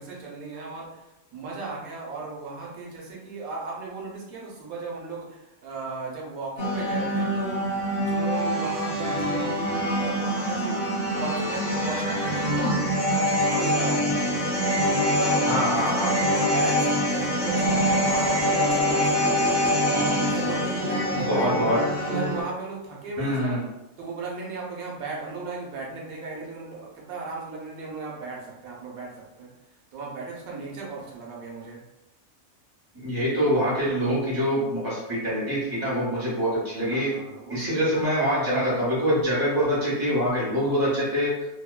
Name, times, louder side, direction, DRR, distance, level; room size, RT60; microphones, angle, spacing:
voice 1, 0.0-7.6 8.0-14.2 14.7-19.6 20.2-21.6 22.0-23.6 24.0-29.5 29.9-31.8 36.8-37.9, right 4 dB, 90° right, -3 dB, 1.1 m, -36 dB
sound 1, 6.6-22.4, equal, 35° left, 1.0 m, -24 dB
voice 2, 15.5-16.1 21.3-21.8 23.2-23.6 32.9-37.1 37.5-41.3, equal, 20° right, -7 dB, 0.9 m, -24 dB
2.9 x 2.1 x 2.2 m, 0.92 s
omnidirectional pair, 1.5 m